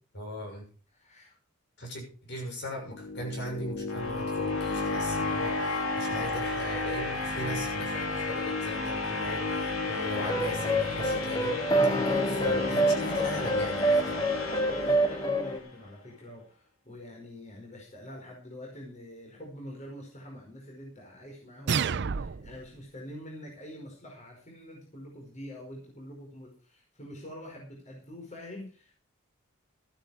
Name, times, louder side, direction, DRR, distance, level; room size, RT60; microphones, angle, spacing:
voice 1, 0.1-0.6 1.8-11.6 12.3-14.2, left 1 dB, 55° left, 1 dB, 6.2 m, -38 dB
voice 2, 0.9-1.4 14.7-28.9, equal, 35° left, -1 dB, 5.0 m, -45 dB
sound 1, 2.7-15.7, left 3 dB, 85° left, 3.3 m, -32 dB
sound 2, 10.1-15.6, right 1 dB, 20° left, 1.3 m, -27 dB
sound 3, 21.7-22.7, right 6 dB, 55° right, 0.6 m, -29 dB
14.0 x 11.5 x 4.9 m, 0.39 s
head